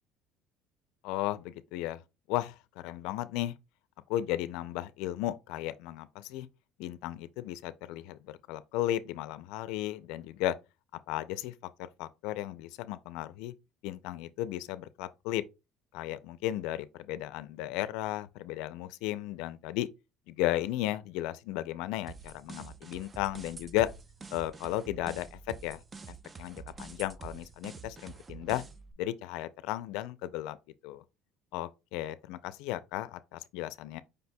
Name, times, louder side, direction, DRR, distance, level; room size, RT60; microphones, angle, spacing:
voice 1, 1.0-2.0 2.3-2.6 2.8-3.5 4.1-6.5 6.8-10.5 11.1-11.5 11.8-13.5 13.8-15.4 15.9-19.9 20.3-23.9 24.3-25.8 26.4-28.6 29.0-30.6 30.8-31.0 31.5-34.0, left 14 dB, 80° left, 0.4 m, -35 dB
sound 1, 22.1-28.9, right 5 dB, 20° right, 0.3 m, -47 dB
5.2 x 2.2 x 4.1 m
cardioid pair, 155°, 0 cm